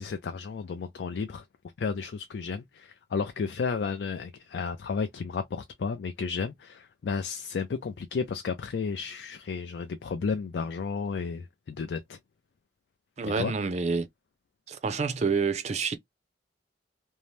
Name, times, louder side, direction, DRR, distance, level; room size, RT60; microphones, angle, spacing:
voice 1, 0.0-1.4 1.8-12.2 13.4-13.5, left 5 dB, 75° left, 0.4 m, -32 dB
voice 2, 13.2-14.1 14.7-16.0, right 5 dB, 40° right, 0.4 m, -28 dB
2.7 x 2.0 x 3.1 m
head